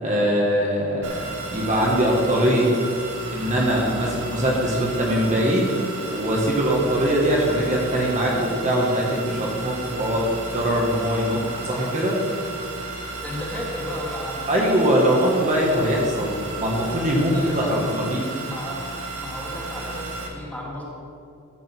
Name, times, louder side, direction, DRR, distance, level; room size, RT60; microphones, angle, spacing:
voice 1, 0.0-1.1 1.5-2.7 3.3-5.7 6.0-10.2 10.5-12.2 14.5-18.4, equal, 35° right, -3 dB, 1.6 m, -22 dB
sound 1, 1.0-20.3, right 3 dB, 80° right, 2.1 m, -34 dB
voice 2, 13.2-14.5 17.3-17.8 18.4-20.8, left 1 dB, 5° left, -5 dB, 2.3 m, -34 dB
14.5 x 5.1 x 6.1 m, 2.6 s
head